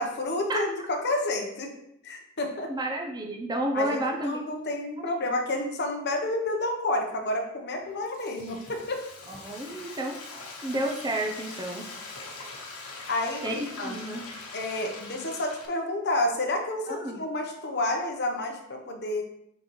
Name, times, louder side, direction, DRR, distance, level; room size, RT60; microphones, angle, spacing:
voice 1, 0.0-1.7 2.0-2.7 3.7-9.0 13.1-14.0 14.5-19.2, left 1 dB, 50° left, 3 dB, 1.0 m, -30 dB
voice 2, 2.7-4.5 9.3-10.2 10.6-11.9 13.4-14.2 16.9-17.2, right 1 dB, 20° right, 2 dB, 0.6 m, -31 dB
Frying (food), 7.8-15.7, left 3 dB, 80° left, 1.4 m, -42 dB
7.6 x 3.9 x 3.1 m, 0.76 s
head